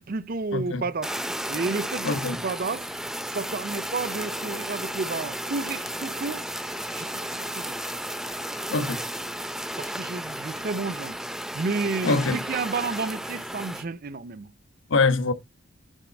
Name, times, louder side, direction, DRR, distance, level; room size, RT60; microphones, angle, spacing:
voice 1, 0.0-2.2 2.4-2.9 3.3-6.4 6.9-7.7 9.8-11.2 11.5-14.5, right 4 dB, 45° right, 0.5 m, -31 dB
voice 2, 0.5-0.9 2.0-2.4 8.7-9.0 12.0-12.4 14.9-15.3, left 3 dB, 80° left, 1.2 m, -24 dB
Fire, 1.0-13.8, equal, ahead, 0.5 m, -33 dB
9.1 x 3.9 x 5.1 m
head